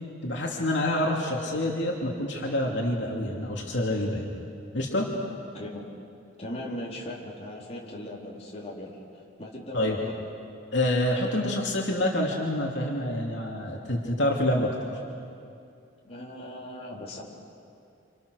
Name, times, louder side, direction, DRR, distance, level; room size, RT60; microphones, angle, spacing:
voice 1, 0.2-4.2 4.7-5.1 9.7-10.0 10.7-14.7, left 1 dB, 65° left, -2 dB, 3.0 m, -27 dB
voice 2, 5.5-5.8 6.4-10.1 16.0-17.2, left 1 dB, 30° left, -4 dB, 4.0 m, -39 dB
29.0 x 27.5 x 6.7 m, 2.5 s
head